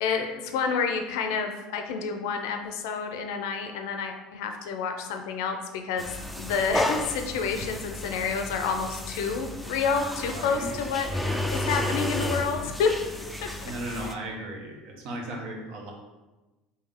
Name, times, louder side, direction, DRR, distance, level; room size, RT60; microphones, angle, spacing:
voice 1, 0.0-6.1 6.4-12.9 13.4-14.1, left 5 dB, 85° left, 5 dB, 0.5 m, -29 dB
sound 1, 6.0-14.1, left 1 dB, ahead, 0.3 m, -32 dB
voice 2, 10.2-10.7 11.2-11.8 13.4-15.9, right 1 dB, 65° right, 1 dB, 0.9 m, -37 dB
3.4 x 2.8 x 3.5 m, 1.1 s
supercardioid pair, 115°, 2 cm